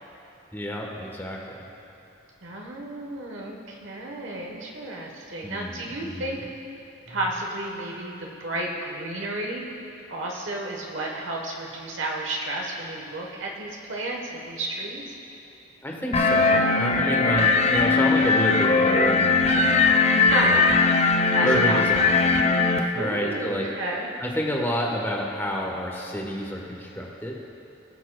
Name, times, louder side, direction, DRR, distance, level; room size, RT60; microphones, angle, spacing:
voice 1, 0.5-1.7 5.4-6.4 7.1-7.2 15.8-19.8 20.4-20.6 21.4-22.4 22.7-23.7 24.2-27.4, equal, 10° left, -1 dB, 1.1 m, -29 dB
voice 2, 2.4-6.4 7.1-9.7 10.1-15.1 20.1-20.6 21.3-21.9 23.0-24.1, right 2 dB, 75° right, -1 dB, 1.1 m, -32 dB
sound 1, 16.1-22.8, left 4 dB, 35° left, 0.5 m, -20 dB
20.0 x 7.2 x 2.3 m, 2.8 s
head